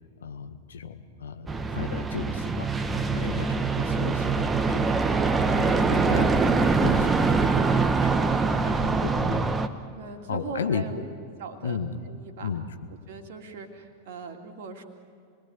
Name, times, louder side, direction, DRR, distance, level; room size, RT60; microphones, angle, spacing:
voice 1, 0.2-2.7 3.1-3.5 3.8-4.9 5.5-8.2 8.6-9.5 10.3-10.8 11.6-12.0 12.4-12.6, left 7 dB, 65° left, 8 dB, 1.5 m, -34 dB
sound 1, 1.5-9.7, right 4 dB, 15° right, 1.2 m, -24 dB
voice 2, 10.0-11.1 11.4-11.8 12.0-12.5 12.9-14.8, right 4 dB, 55° right, 4 dB, 2.7 m, -40 dB
28.5 x 20.5 x 8.1 m, 2.4 s
figure-of-eight pair, 90°, 0 cm